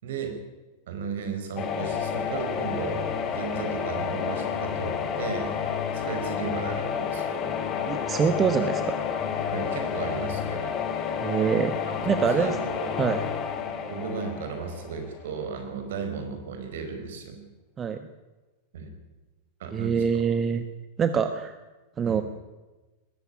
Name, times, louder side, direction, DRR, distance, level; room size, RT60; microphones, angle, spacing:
voice 1, 0.0-0.4 0.9-5.5 5.9-7.3 9.5-10.7 11.9-12.9 13.9-17.4 18.7-18.9 19.6-20.2 22.0-22.2, right 5 dB, 60° right, 6 dB, 4.5 m, -35 dB
sound 1, 1.6-15.4, left 7 dB, 30° left, 2.8 m, -30 dB
voice 2, 7.9-8.9 11.2-11.7 12.0-12.6 13.0-13.2 17.8-18.0 19.7-20.6 21.0-21.5 22.0-22.2, right 7 dB, 25° right, 9 dB, 1.3 m, -25 dB
20.0 x 14.5 x 9.9 m, 1.2 s
figure-of-eight pair, 90°, 0 cm